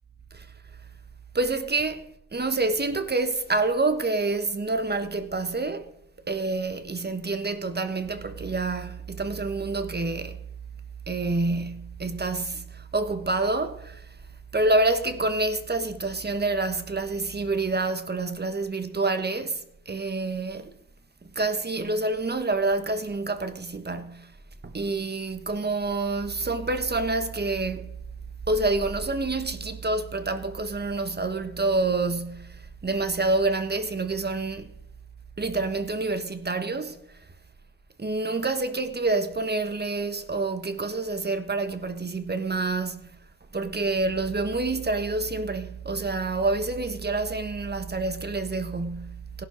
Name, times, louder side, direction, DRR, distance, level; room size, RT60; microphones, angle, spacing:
voice 1, 1.3-5.9 6.3-10.4 11.1-14.1 14.5-20.7 21.3-24.3 24.6-27.9 28.5-34.7 35.4-37.0 38.0-43.1 43.5-49.4, right 3 dB, 25° right, 1.4 m, -27 dB
16.5 x 11.5 x 5.2 m
cardioid pair, 80°, 37 cm